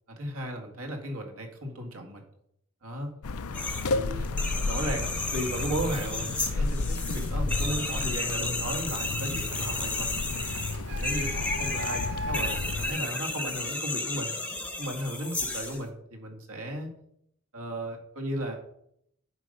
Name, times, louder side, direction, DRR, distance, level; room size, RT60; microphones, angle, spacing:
voice 1, 0.2-2.2 2.8-3.1 3.8-4.3 4.6-10.1 10.9-14.3 14.8-16.9 17.5-18.6, right 1 dB, 75° right, 3 dB, 1.8 m, -35 dB
sound 1, 3.2-12.9, left 3 dB, 75° left, 0.6 m, -32 dB
sound 2, 3.5-3.9 4.2-15.8, left 2 dB, 5° left, 0.8 m, -33 dB
Printer, 9.5-14.1, left 1 dB, 50° right, 0.9 m, -39 dB
8.0 x 5.2 x 5.5 m, 0.73 s
head